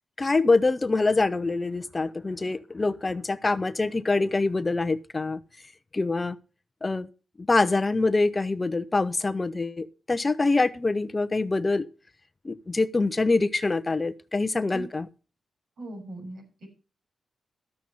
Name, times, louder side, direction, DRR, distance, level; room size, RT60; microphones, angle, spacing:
voice 1, 0.2-5.4 5.9-6.4 6.8-7.1 7.4-11.9 12.4-15.1, left 3 dB, 25° left, 0.7 m, -25 dB
voice 2, 15.8-16.7, right 2 dB, 80° right, 6.6 m, -40 dB
12.5 x 7.6 x 5.6 m
cardioid pair, 90°, 0 cm